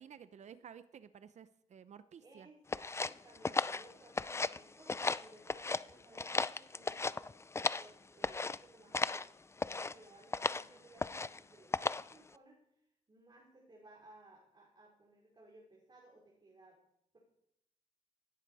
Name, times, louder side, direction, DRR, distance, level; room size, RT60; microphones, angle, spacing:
voice 1, 0.0-2.5, right 8 dB, 65° right, 14 dB, 0.7 m, -54 dB
voice 2, 2.2-2.6 3.0-7.3 7.8-16.8, right 2 dB, 35° right, -4 dB, 5.1 m, -61 dB
sound 1, 2.7-4.6 4.9-5.8 6.1-7.9 8.2-8.6 8.9-9.3 9.6-9.9 10.3-10.7 11.0-11.4 11.7-12.1, left 3 dB, 20° left, 0.5 m, -35 dB
17.0 x 9.7 x 4.9 m, 0.78 s
cardioid pair, 75°, 13 cm